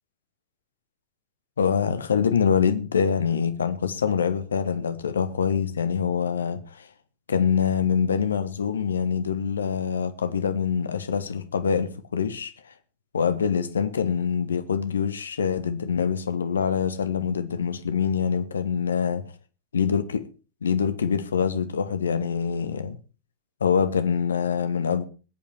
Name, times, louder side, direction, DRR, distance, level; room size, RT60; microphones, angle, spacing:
voice 1, 1.6-6.9 7.3-12.5 13.1-19.2 19.7-20.3 20.6-23.0 23.6-25.1, left 6 dB, 70° left, 1.3 m, -25 dB
21.0 x 8.5 x 4.5 m
figure-of-eight pair, 90°, 0 cm